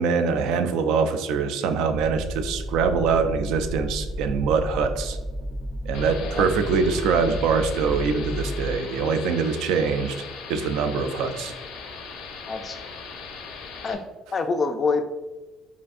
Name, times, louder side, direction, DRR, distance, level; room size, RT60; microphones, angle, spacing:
voice 1, 0.0-5.2 5.8-10.2 10.5-11.5, right 5 dB, 75° right, 8 dB, 0.4 m, -24 dB
sound 1, 1.9-8.8, equal, 25° right, 0.6 m, -32 dB
sound 2, 5.9-13.9, left 5 dB, 75° left, 0.6 m, -39 dB
voice 2, 12.5-12.8 13.8-14.0 14.3-15.0, left 4 dB, 25° left, 7 dB, 0.3 m, -26 dB
5.0 x 2.6 x 2.4 m, 1.2 s
cardioid pair, 145°, 0 cm